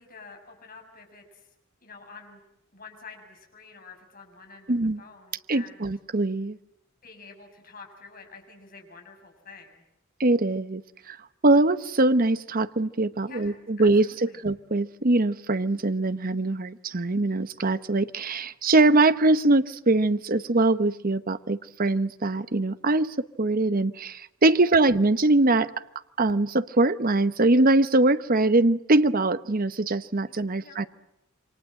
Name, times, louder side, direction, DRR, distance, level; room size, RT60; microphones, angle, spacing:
voice 1, 0.0-1.5 1.8-2.4 2.7-5.9 7.0-9.8 13.3-14.4 24.5-24.6 30.6-30.9, left 4 dB, 45° left, 3 dB, 6.8 m, -48 dB
voice 2, 4.7-5.0 5.5-6.6 10.2-10.8 11.1-11.2 11.4-25.7 26.2-30.9, right 2 dB, 45° right, 13 dB, 1.0 m, -22 dB
28.0 x 24.5 x 7.7 m, 0.82 s
head